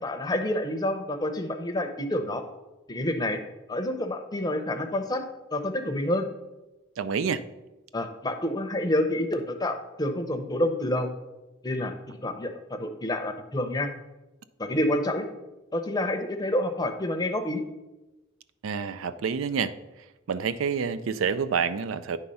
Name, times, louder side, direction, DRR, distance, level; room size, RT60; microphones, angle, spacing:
voice 1, 0.0-2.4 2.9-3.4 3.7-5.2 5.5-6.3 7.9-11.1 11.6-13.9 14.6-15.3 15.7-17.6, left 1 dB, 20° left, 6 dB, 0.6 m, -28 dB
voice 2, 7.0-7.4 18.6-19.7 20.3-22.2, right 6 dB, 85° right, 14 dB, 0.4 m, -28 dB
9.7 x 3.4 x 5.5 m, 1.1 s
head